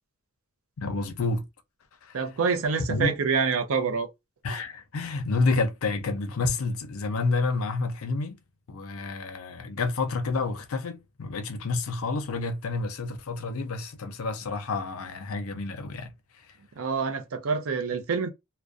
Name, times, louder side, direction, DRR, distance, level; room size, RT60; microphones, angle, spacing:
voice 1, 0.8-1.5 2.0-2.2 2.9-3.2 4.4-8.4 8.7-16.1, left 3 dB, 65° left, 0.5 m, -29 dB
voice 2, 2.1-4.1 16.8-18.3, right 5 dB, 65° right, 0.5 m, -26 dB
2.4 x 2.1 x 2.4 m
head